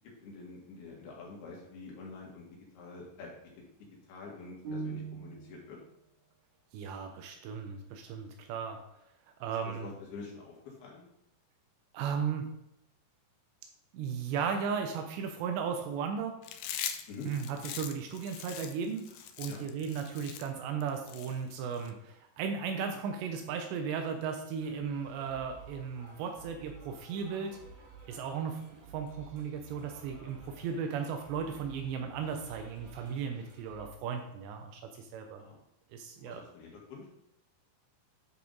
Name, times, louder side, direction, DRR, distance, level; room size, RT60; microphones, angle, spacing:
voice 1, 0.2-2.4 2.7-3.3 4.1-5.8 9.7-11.0 17.1-17.3 19.5-19.7 35.4-35.6 36.2-37.1, left 4 dB, 70° left, -2 dB, 3.8 m, -46 dB
sound 1, 4.6-5.7, right 4 dB, 60° right, 2.1 m, -39 dB
voice 2, 6.7-8.8 9.4-9.9 11.9-12.5 13.9-16.4 17.2-19.1 19.4-27.6 28.1-35.4 35.9-36.4, right 6 dB, 85° right, 4 dB, 3.0 m, -36 dB
Chewing mastication, 16.4-21.9, left 9 dB, 90° left, 2.1 m, -41 dB
sound 2, 24.5-33.9, right 3 dB, 45° right, 2.0 m, -53 dB
10.5 x 4.9 x 4.0 m, 0.79 s
omnidirectional pair, 4.9 m